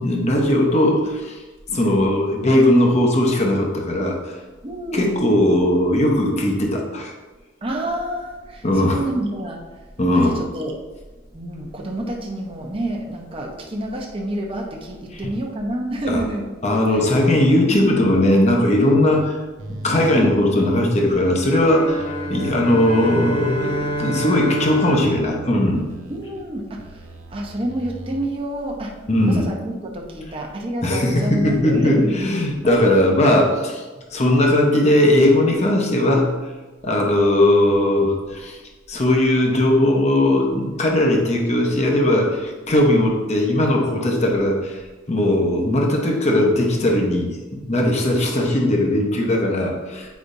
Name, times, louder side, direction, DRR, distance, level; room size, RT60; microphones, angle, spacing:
voice 1, 0.0-1.4 1.7-4.4 4.9-7.1 8.6-9.0 10.0-10.4 16.1-16.2 16.6-19.3 19.7-25.8 29.1-29.5 30.8-33.8 34.1-36.5 36.8-38.6 38.9-44.8 45.1-50.1, left 1 dB, 35° left, 0 dB, 0.9 m, -18 dB
voice 2, 4.6-5.2 7.6-9.6 10.1-10.8 11.3-16.5 16.9-17.0 17.7-17.8 19.9-20.4 26.1-28.9 29.3-32.1 32.6-32.8, right 1 dB, 30° right, -1 dB, 0.8 m, -28 dB
sound 1, 18.7-19.3 19.6-21.6 22.0-24.1 24.4-26.4 26.8-28.3, right 2 dB, 80° right, 0.7 m, -37 dB
sound 2, 21.6-26.3, right 1 dB, 90° left, 1.4 m, -28 dB
8.3 x 5.0 x 2.6 m, 1.2 s
head